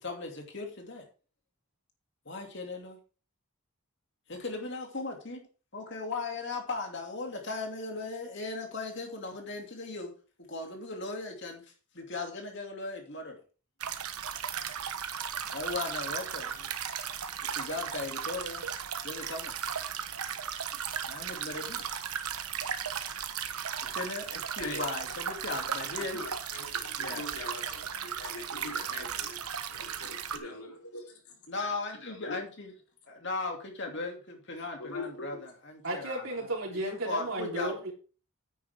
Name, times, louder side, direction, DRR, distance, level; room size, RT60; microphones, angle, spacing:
voice 1, 0.0-1.0 2.3-3.0 4.3-5.4 5.7-10.1 10.5-11.6 11.9-13.4 15.5-16.7 17.5-18.6 19.0-19.5 21.1-21.8 23.9-26.2 27.0-27.2 28.9-29.0 31.5-32.7 33.1-36.4 36.7-37.8, left 3 dB, 50° left, 3 dB, 2.5 m, -37 dB
sound 1, 13.8-30.4, right 8 dB, 85° right, 1.1 m, -36 dB
voice 2, 25.8-29.4 29.7-31.4 32.2-32.4 34.8-35.4, left 2 dB, 80° left, 0 dB, 3.5 m, -42 dB
voice 3, 35.8-37.9, right 1 dB, 65° right, 0 dB, 3.4 m, -34 dB
9.8 x 9.2 x 3.5 m, 0.36 s
head